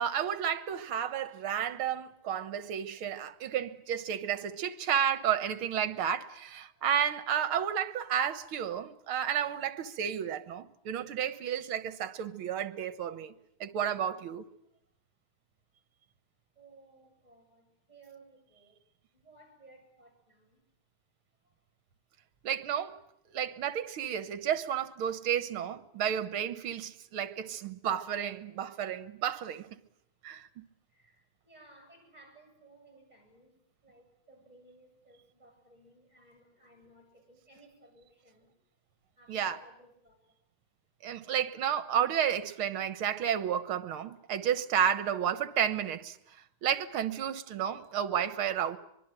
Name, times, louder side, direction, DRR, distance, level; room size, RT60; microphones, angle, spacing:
voice 1, 0.0-13.3 13.6-14.4 22.4-23.0 23.3-29.7 30.2-30.6 39.3-39.6 41.0-46.2 46.6-48.8, right 9 dB, 75° right, 2.0 m, -32 dB
voice 2, 16.5-18.8 19.1-20.6 21.4-21.6 30.9-38.5 39.2-40.4, right 2 dB, 15° right, 7.8 m, -59 dB
24.0 x 22.5 x 9.1 m
omnidirectional pair, 2.4 m